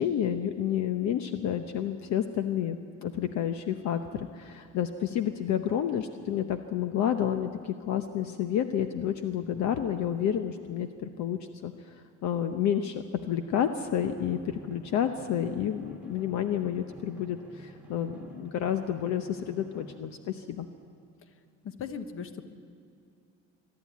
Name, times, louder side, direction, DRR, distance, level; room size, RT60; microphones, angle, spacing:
voice 1, 0.0-11.7 12.2-20.7, left 9 dB, 65° left, 8 dB, 0.9 m, -30 dB
Drum, 13.9-20.0, right 1 dB, 5° right, 1.8 m, -51 dB
voice 2, 21.6-22.4, left 6 dB, 45° left, 9 dB, 1.3 m, -38 dB
23.0 x 12.5 x 9.4 m, 2.5 s
cardioid pair, 135°, 31 cm